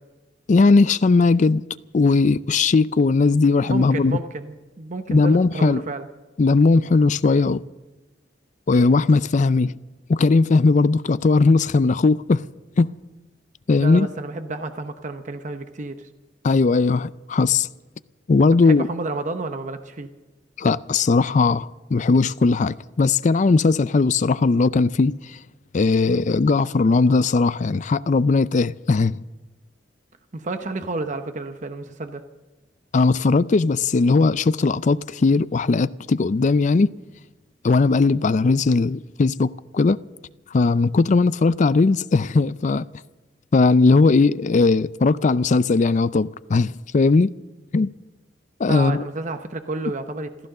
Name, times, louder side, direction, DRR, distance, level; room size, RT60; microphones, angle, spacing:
voice 1, 0.5-1.6 1.9-4.2 5.1-5.8 6.4-7.6 8.7-9.8 10.1-12.4 12.8-12.9 13.7-14.1 16.4-17.7 18.3-18.9 20.6-25.4 25.7-29.2 32.9-36.9 37.6-40.0 40.5-42.8 43.5-47.4 47.7-47.9 48.6-49.1, left 3 dB, 40° left, 0.4 m, -18 dB
voice 2, 3.7-6.1 13.8-16.1 18.6-20.1 30.3-32.2 48.7-50.5, right 2 dB, 40° right, 0.8 m, -30 dB
15.0 x 14.0 x 6.6 m
head